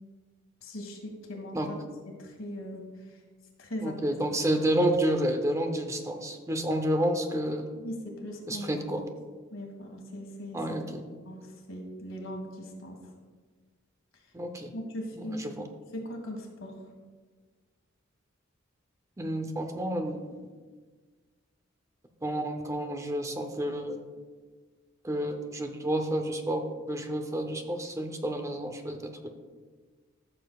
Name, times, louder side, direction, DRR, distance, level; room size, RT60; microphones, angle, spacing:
voice 1, 0.6-1.8 2.1-3.2 3.6-4.0 7.8-8.9 9.5-10.6 11.3-13.0 14.7-15.7 15.9-16.8, equal, 85° left, 2 dB, 1.7 m, -39 dB
voice 2, 3.8-7.7 8.5-9.0 10.5-11.0 14.3-14.7 15.3-15.7 19.2-20.4 22.2-24.0 25.0-29.1, right 1 dB, 15° right, 5 dB, 0.6 m, -30 dB
14.0 x 6.7 x 2.3 m, 1.4 s
head